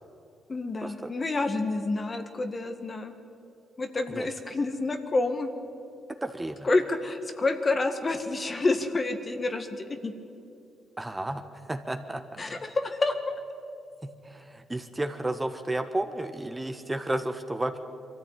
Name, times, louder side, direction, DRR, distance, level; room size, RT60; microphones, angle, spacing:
voice 1, 0.5-3.1 3.8-5.5 6.6-10.1 12.4-13.4, left 3 dB, 35° left, 7 dB, 1.8 m, -28 dB
voice 2, 6.2-6.7 11.0-12.4 14.0-17.8, right 1 dB, 15° right, 7 dB, 1.4 m, -32 dB
23.0 x 14.0 x 9.2 m, 2.7 s
supercardioid pair, 65°, 0 cm